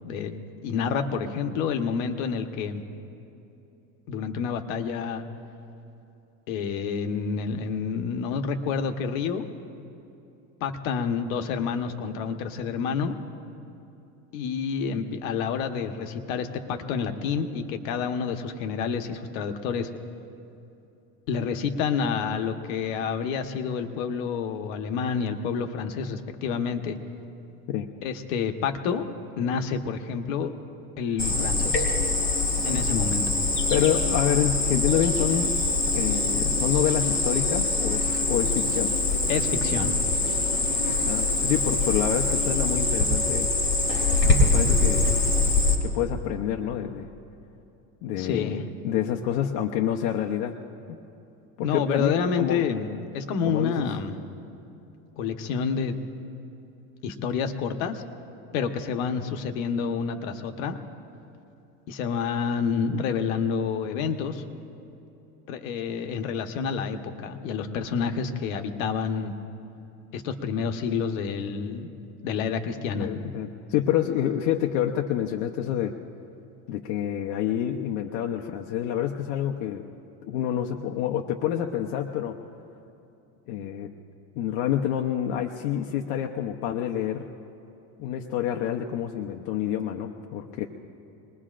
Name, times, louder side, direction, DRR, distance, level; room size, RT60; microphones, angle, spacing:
voice 1, 0.0-2.8 4.1-5.2 6.5-9.4 10.6-13.1 14.3-19.9 21.3-27.0 28.0-29.0 29.4-30.5 31.0-31.9 32.6-33.2 39.3-39.9 48.2-48.6 51.6-54.1 55.2-55.9 57.0-58.0 58.5-60.8 61.9-64.4 65.5-69.3 70.1-71.9 72.2-73.1, left 6 dB, 85° left, 6 dB, 1.3 m, -28 dB
Cricket, 31.2-45.7, left 2 dB, 35° left, 3.5 m, -24 dB
voice 2, 33.7-35.5 35.9-38.9 41.1-43.5 44.2-45.2 45.8-47.1 48.0-50.5 50.9-51.0 51.6-52.7 53.5-53.9 72.9-75.9 76.7-79.8 80.2-82.4 83.5-83.9 84.4-87.3 88.0-90.7, left 10 dB, 70° left, 2 dB, 0.9 m, -28 dB
26.0 x 21.0 x 2.5 m, 2.8 s
supercardioid pair, 135°, 39 cm